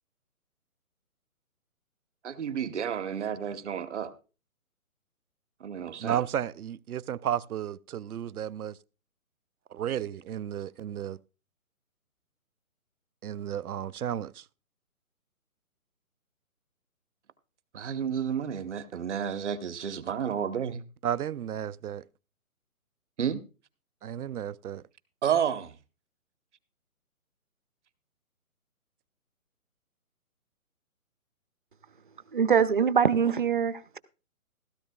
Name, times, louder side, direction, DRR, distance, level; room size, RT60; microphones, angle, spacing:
voice 1, 2.2-4.1 5.6-6.2 17.7-20.8 23.2-23.4 25.2-25.7, right 8 dB, 50° right, 1.1 m, -31 dB
voice 2, 6.0-8.8 9.7-11.2 13.2-14.5 21.0-22.1 24.0-24.8, right 10 dB, 80° right, 0.6 m, -33 dB
voice 3, 32.3-34.0, right 7 dB, 35° right, 0.6 m, -23 dB
16.0 x 13.5 x 2.3 m
hypercardioid pair, 155°, 43 cm